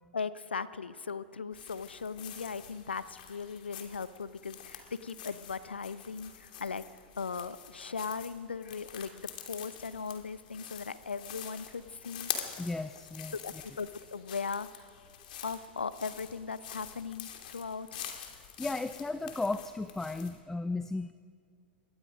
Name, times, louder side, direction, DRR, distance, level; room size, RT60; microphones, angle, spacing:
voice 1, 0.1-6.8 7.2-12.3 13.4-14.9 15.4-18.0, left 5 dB, 75° left, 15 dB, 0.9 m, -38 dB
sound 1, 1.5-20.4, left 9 dB, 55° left, 2.9 m, -46 dB
voice 2, 12.6-13.3 18.6-21.1, left 3 dB, 5° left, 12 dB, 0.7 m, -35 dB
27.0 x 22.0 x 5.2 m, 2.1 s
figure-of-eight pair, 95°, 6 cm